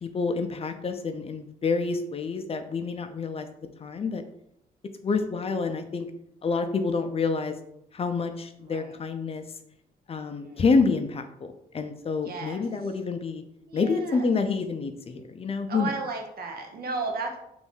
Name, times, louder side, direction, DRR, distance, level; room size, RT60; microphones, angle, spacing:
voice 1, 0.0-3.5 3.8-4.2 5.0-6.1 6.4-7.5 7.9-9.4 10.1-13.4 13.7-15.9, left 4 dB, 35° left, 7 dB, 0.4 m, -28 dB
voice 2, 8.6-8.9 10.2-10.6 12.2-12.6 13.7-14.3 15.7-17.4, right 3 dB, 65° right, 3 dB, 0.7 m, -35 dB
3.2 x 2.6 x 3.3 m, 0.77 s
cardioid pair, 85°, 17 cm